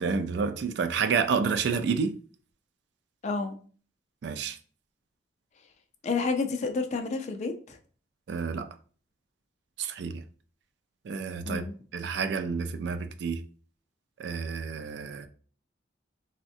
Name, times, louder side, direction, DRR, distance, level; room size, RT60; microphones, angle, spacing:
voice 1, 0.0-2.1 4.2-4.6 8.3-8.7 9.8-10.2 11.0-11.6 11.9-13.4 14.2-15.3, right 5 dB, 60° right, 0.3 m, -29 dB
voice 2, 3.2-3.6 6.0-7.8 11.5-11.7, left 4 dB, 35° left, 0.3 m, -30 dB
3.5 x 2.1 x 2.6 m
head